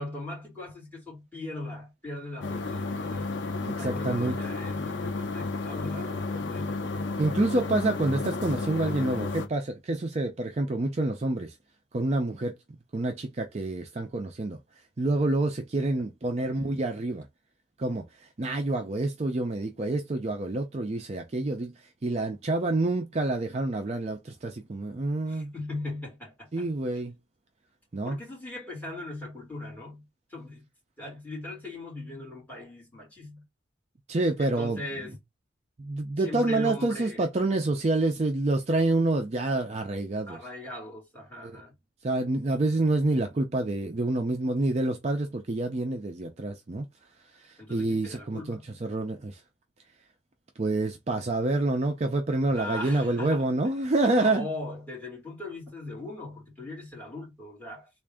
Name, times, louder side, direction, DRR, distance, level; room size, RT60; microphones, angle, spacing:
voice 1, 0.0-3.3 3.7-7.1 16.4-16.5 25.3-26.7 28.0-30.7 31.0-33.4 34.4-35.2 36.2-37.3 40.3-41.7 47.6-48.6 52.5-53.5 54.1-57.9, left 2 dB, 10° left, 2.3 m, -39 dB
sound 1, 2.4-9.5, left 3 dB, 80° left, 0.6 m, -32 dB
voice 2, 3.6-4.4 7.2-11.5 11.9-12.5 12.9-14.6 15.0-17.3 17.8-21.7 22.0-25.5 26.5-27.1 27.9-28.2 34.1-34.8 35.8-40.4 41.4-41.5 42.0-46.9 47.4-49.4 50.6-54.5, right 2 dB, 35° right, 0.4 m, -27 dB
3.5 x 2.5 x 3.5 m
head